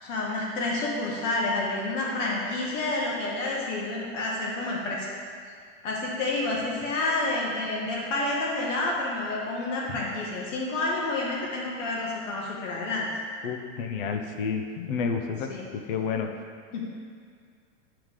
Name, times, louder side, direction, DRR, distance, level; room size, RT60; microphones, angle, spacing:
voice 1, 0.0-5.1 5.8-13.1 15.5-15.6 16.7-16.9, left 2 dB, 70° left, -3 dB, 1.6 m, -29 dB
voice 2, 13.4-15.5 15.9-16.3, left 6 dB, 45° left, 5 dB, 0.8 m, -30 dB
11.0 x 4.9 x 3.7 m, 2.2 s
supercardioid pair, 160°, 39 cm